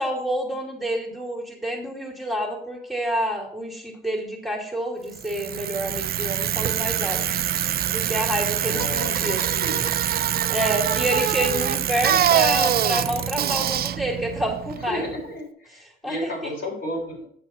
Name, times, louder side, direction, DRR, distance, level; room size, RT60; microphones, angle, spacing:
voice 1, 0.0-7.2 7.9-9.4 10.5-15.0 16.0-16.5, right 1 dB, ahead, 0 dB, 2.3 m, -28 dB
Bicycle, 5.1-15.2, right 10 dB, 50° right, 0.5 m, -24 dB
voice 2, 8.6-10.0 12.0-13.2 14.7-17.3, left 1 dB, 65° left, -1 dB, 3.6 m, -34 dB
8.8 x 6.3 x 4.2 m, 0.62 s
cardioid pair, 90°, 20 cm